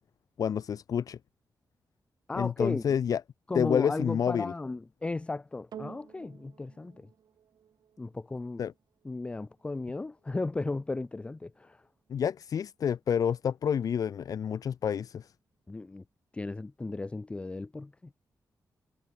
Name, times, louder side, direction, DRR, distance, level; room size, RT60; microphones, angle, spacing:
voice 1, 0.4-1.2 2.3-3.2 3.5-4.5 8.6-8.7 12.1-15.3, left 8 dB, 65° left, 0.9 m, -29 dB
voice 2, 2.3-3.0 3.5-7.1 8.0-8.6 9.0-11.9 15.7-16.0 16.3-18.1, left 3 dB, 15° left, 0.5 m, -35 dB
sound 1, 5.7-14.3 15.0-15.1, right 9 dB, 85° right, 5.0 m, -54 dB
wide cardioid pair, 150°, 7 cm